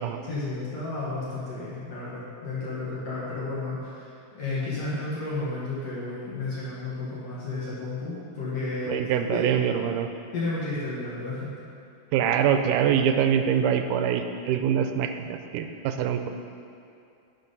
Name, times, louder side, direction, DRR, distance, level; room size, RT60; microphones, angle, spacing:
voice 1, 0.2-8.9 9.3-9.4 10.3-11.7, left 3 dB, 55° left, -8 dB, 2.3 m, -32 dB
voice 2, 8.9-10.1 12.1-16.3, right 8 dB, 80° right, 7 dB, 2.0 m, -24 dB
11.0 x 5.2 x 5.4 m, 2.6 s
omnidirectional pair, 3.8 m